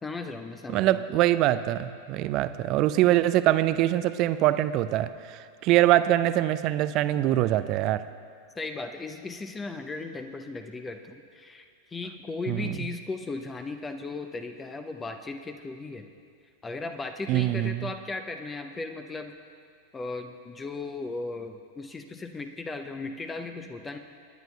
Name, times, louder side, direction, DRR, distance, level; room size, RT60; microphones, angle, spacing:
voice 1, 0.0-1.0 8.6-11.7 11.9-16.0 16.6-19.4 19.9-24.0, left 3 dB, 15° left, 7 dB, 0.6 m, -36 dB
voice 2, 0.7-8.0 12.5-12.8 17.3-17.9, right 14 dB, 40° right, 13 dB, 0.4 m, -23 dB
26.5 x 10.5 x 2.3 m, 2.2 s
figure-of-eight pair, 90°, 0 cm